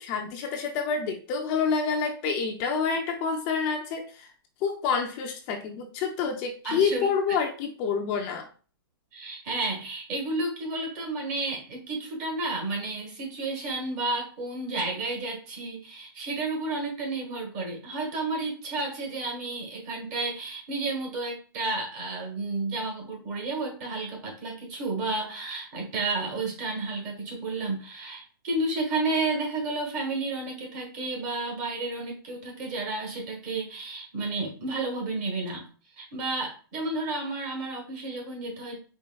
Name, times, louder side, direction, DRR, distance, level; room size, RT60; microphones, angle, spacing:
voice 1, 0.0-4.3 4.6-8.5, left 5 dB, 30° left, 3 dB, 0.5 m, -28 dB
voice 2, 6.6-7.1 9.1-35.7 36.0-38.8, right 2 dB, 40° right, 1 dB, 1.5 m, -31 dB
4.6 x 3.3 x 2.2 m, 0.38 s
hypercardioid pair, 150°, 13 cm